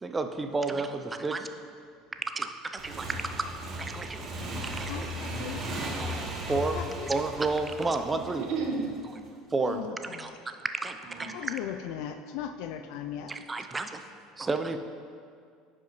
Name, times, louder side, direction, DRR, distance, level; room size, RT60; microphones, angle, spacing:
voice 1, 0.0-1.5 2.4-3.5 3.8-4.2 4.5-5.1 6.0-6.2 6.4-6.8 7.1-8.4 9.5-10.3 10.8-11.5 13.3-14.0 14.4-14.8, right 3 dB, 20° right, 7 dB, 0.5 m, -31 dB
Motorcycle / Engine, 2.8-9.1, right 1 dB, 45° right, 1.2 m, -37 dB
voice 2, 4.9-5.6 6.5-7.1 9.6-10.4 11.3-13.3, left 10 dB, 70° left, 7 dB, 0.3 m, -38 dB
voice 3, 8.2-9.3 11.0-11.5, right 4 dB, 65° right, 1 dB, 1.2 m, -34 dB
9.9 x 5.5 x 3.1 m, 2.2 s
supercardioid pair, 100°, 0 cm